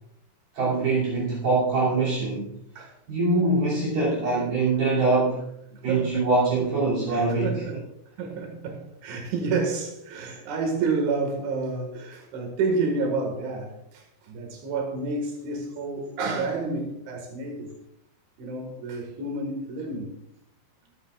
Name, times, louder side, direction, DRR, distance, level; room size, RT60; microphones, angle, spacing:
voice 1, 0.5-2.5 3.1-5.4 5.8-7.5, right 3 dB, 55° right, 4.3 m, -23 dB
voice 2, 5.9-6.3 7.1-7.8 8.2-17.7 18.4-20.1, right 3 dB, 90° right, 4.2 m, -29 dB
24.0 x 8.6 x 2.4 m
omnidirectional pair, 5.2 m